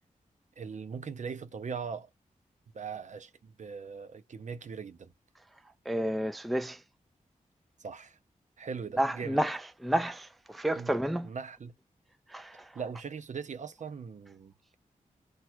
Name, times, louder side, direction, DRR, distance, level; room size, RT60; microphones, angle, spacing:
voice 1, 0.6-2.1 2.7-5.1 7.8-8.2 8.6-9.4 10.8-10.9 11.2-11.7 12.7-14.7, right 6 dB, 55° right, 0.6 m, -40 dB
voice 2, 5.9-6.8 9.0-11.3 12.3-12.7, right 1 dB, ahead, 0.3 m, -30 dB
4.3 x 2.3 x 2.3 m
cardioid pair, 65°, 14 cm